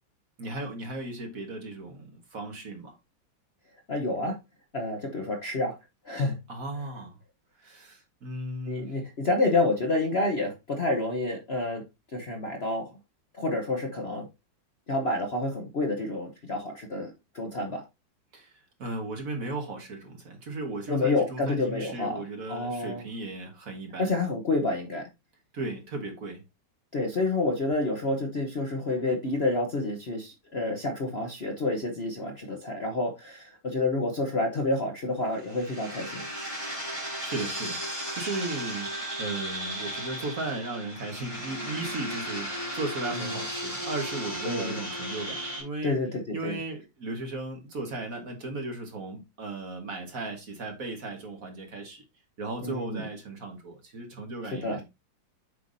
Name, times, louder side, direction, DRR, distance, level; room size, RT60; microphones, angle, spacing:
voice 1, 0.4-3.0 6.5-7.2 7.6-9.0 18.3-24.1 25.5-26.4 37.0-45.9 46.3-52.0 52.4-54.8, right 2 dB, 45° right, 1.8 m, -36 dB
voice 2, 3.9-4.4 4.7-5.7 6.0-6.4 8.7-11.8 12.1-12.9 13.4-14.3 14.9-17.8 20.9-22.2 22.5-23.0 24.0-25.1 26.9-36.2 43.3-43.4 44.4-44.8 45.8-46.6 52.6-53.0 54.6-54.8, left 2 dB, 40° left, 1.0 m, -29 dB
sound 1, 35.3-45.6, equal, 20° right, 4.2 m, -35 dB
8.3 x 5.7 x 2.7 m
omnidirectional pair, 2.1 m